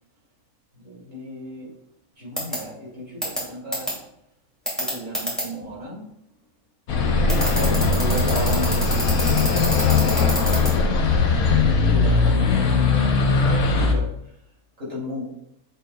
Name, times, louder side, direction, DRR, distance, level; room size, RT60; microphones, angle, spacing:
voice 1, 0.8-1.7 2.2-3.9 4.8-6.1 7.2-10.4 10.9-14.0 14.8-15.3, equal, 60° right, -6 dB, 3.2 m, -33 dB
sound 1, 2.4-2.6 3.2-3.4 3.7-3.9 4.7-5.4 7.3-10.7, equal, ahead, 2.5 m, -25 dB
sound 2, 6.9-13.9, left 4 dB, 85° left, 1.4 m, -20 dB
7.8 x 6.7 x 2.3 m, 0.75 s
omnidirectional pair, 1.5 m